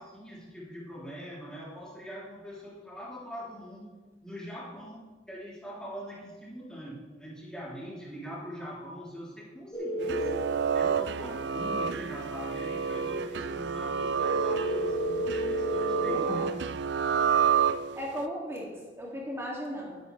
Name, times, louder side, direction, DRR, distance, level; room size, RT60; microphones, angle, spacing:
voice 1, 0.0-3.9 4.2-5.0 5.3-10.4 10.7-16.7, equal, 5° left, -8 dB, 3.5 m, -42 dB
sound 1, 9.7-10.3 14.2-16.1, equal, 20° left, 2.3 m, -31 dB
sound 2, 10.0-18.2, right 7 dB, 70° right, 0.4 m, -29 dB
voice 2, 16.0-16.4 18.0-18.7 19.0-20.0, equal, 15° right, -3 dB, 2.5 m, -36 dB
12.0 x 11.0 x 3.4 m, 1.3 s
head